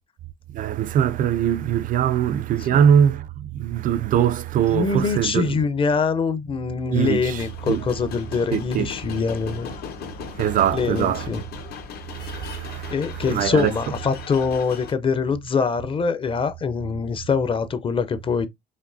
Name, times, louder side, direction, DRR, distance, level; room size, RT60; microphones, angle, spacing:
voice 1, 0.5-5.5 6.9-7.4 7.7-7.8 8.5-8.9 10.4-11.3 12.2-12.9 13.3-13.7, right 9 dB, 55° right, 0.4 m, -21 dB
voice 2, 4.7-9.7 10.7-11.4 12.9-18.5, left 5 dB, 30° left, 0.6 m, -24 dB
sound 1, 7.0-14.9, left 6 dB, 70° left, 1.2 m, -37 dB
5.1 x 2.9 x 2.6 m
cardioid pair, 110°, 17 cm